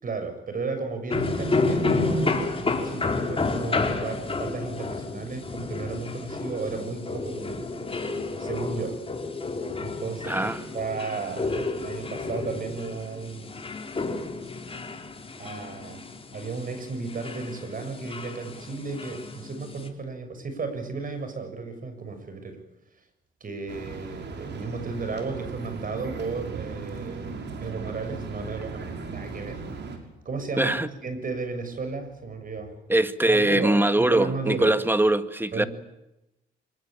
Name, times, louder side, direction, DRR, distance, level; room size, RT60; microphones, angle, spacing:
voice 1, 0.0-7.7 8.4-9.0 9.8-13.6 15.4-16.1 16.3-22.6 23.4-29.6 30.2-32.7 33.3-34.7 35.5-35.7, right 4 dB, 45° right, 6.8 m, -34 dB
sound 1, 1.1-19.9, left 3 dB, 30° left, 4.2 m, -31 dB
voice 2, 10.3-10.6 30.6-30.9 32.9-35.6, right 1 dB, 10° right, 1.8 m, -22 dB
sound 2, 23.7-30.0, right 4 dB, 60° right, 6.0 m, -37 dB
25.0 x 22.0 x 8.9 m
cardioid pair, 90°, 20 cm